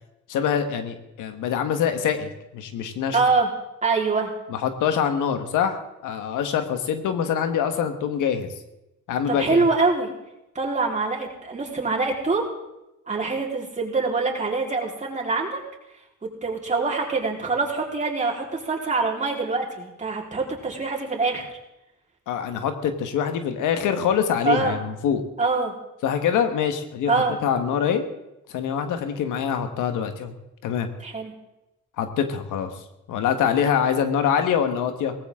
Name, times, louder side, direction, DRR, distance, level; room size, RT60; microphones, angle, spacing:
voice 1, 0.3-3.2 4.5-8.5 9.1-9.6 22.3-25.2 26.0-28.0 28.5-30.3 30.6-30.9 32.0-32.7 33.1-35.1, left 8 dB, 85° left, 8 dB, 1.5 m, -24 dB
voice 2, 3.1-3.5 3.8-4.3 9.3-10.1 10.5-12.4 13.1-15.6 16.4-21.5 24.4-24.7 25.4-25.7 27.1-27.4 31.0-31.3, right 3 dB, 25° right, -2 dB, 4.1 m, -24 dB
18.5 x 15.5 x 3.7 m, 0.92 s
cardioid pair, 90°, 30 cm